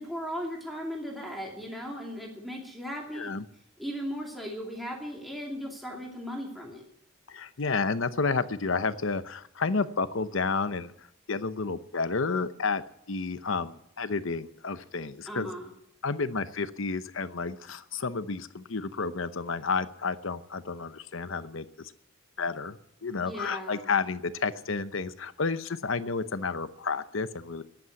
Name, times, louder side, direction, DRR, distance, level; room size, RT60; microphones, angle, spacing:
voice 1, 0.0-3.3 3.8-6.8 15.3-15.7 23.2-23.9, equal, ahead, -2 dB, 2.6 m, -37 dB
voice 2, 3.1-3.4 7.3-12.8 13.1-15.5 16.0-21.9 22.4-27.6, left 4 dB, 65° left, 12 dB, 0.8 m, -31 dB
14.0 x 10.5 x 9.4 m, 0.76 s
head